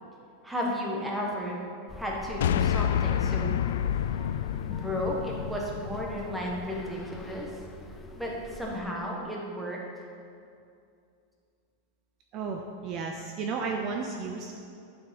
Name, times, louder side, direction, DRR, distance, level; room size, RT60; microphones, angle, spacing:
voice 1, 0.4-1.6 2.0-3.6 4.7-7.5 8.2-9.8, equal, 5° right, -3 dB, 1.5 m, -33 dB
sound 1, 1.9-8.8, left 2 dB, 10° left, 0.6 m, -44 dB
sound 2, 2.4-6.8, left 10 dB, 85° left, 0.4 m, -29 dB
voice 2, 12.3-14.6, right 4 dB, 35° right, 2 dB, 0.7 m, -33 dB
10.5 x 7.1 x 5.3 m, 2.5 s
supercardioid pair, 155°, 0 cm